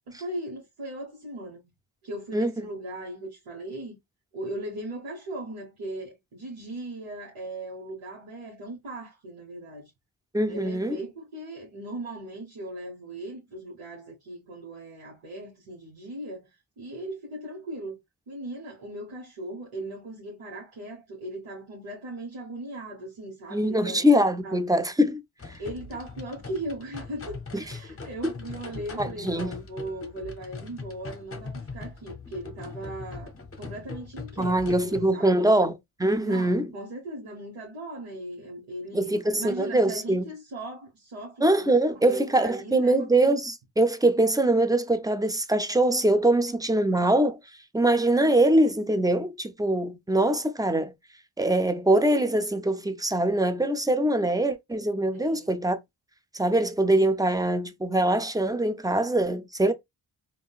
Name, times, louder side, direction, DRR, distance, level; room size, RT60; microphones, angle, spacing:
voice 1, 0.1-1.7 2.0-4.0 4.3-9.9 10.5-16.5 16.8-18.0 18.3-24.1 24.4-24.6 25.6-35.5 36.2-43.0 55.1-55.5, right 1 dB, 75° right, 1.3 m, -38 dB
voice 2, 10.3-11.0 23.5-25.2 25.5-25.6 27.5-27.6 28.2-28.3 29.0-29.6 34.4-35.7 36.0-36.7 38.9-40.2 41.4-47.4 47.7-50.9 51.4-55.8 56.3-59.7, right 1 dB, 10° right, 0.4 m, -23 dB
sound 1, 25.4-35.1, left 4 dB, 30° left, 0.8 m, -41 dB
3.7 x 2.5 x 2.3 m
cardioid pair, 45°, 49 cm